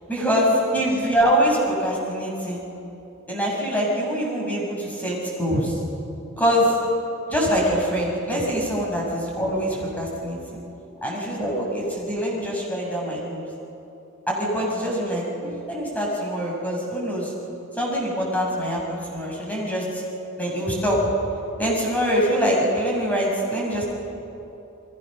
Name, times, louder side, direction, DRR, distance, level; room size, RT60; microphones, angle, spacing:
voice 1, 0.1-2.6 3.3-5.7 6.4-6.8 7.3-10.4 11.0-13.5 14.3-17.3 17.7-20.0 20.4-21.1 21.6-23.8, equal, 5° left, -3 dB, 6.9 m, -24 dB
30.0 x 21.5 x 6.7 m, 2.9 s
head